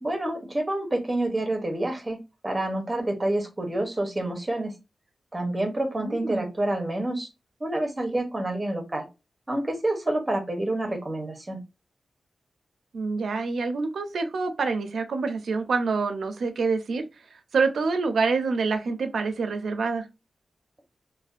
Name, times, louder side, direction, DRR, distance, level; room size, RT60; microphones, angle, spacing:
voice 1, 0.0-2.2 2.4-4.7 5.3-7.3 7.6-9.1 9.5-11.6, right 1 dB, 20° right, 0.7 m, -28 dB
voice 2, 6.0-6.5 12.9-17.0 17.5-20.1, right 4 dB, 85° right, 0.4 m, -26 dB
2.4 x 2.1 x 2.4 m
wide cardioid pair, 120°, 0 cm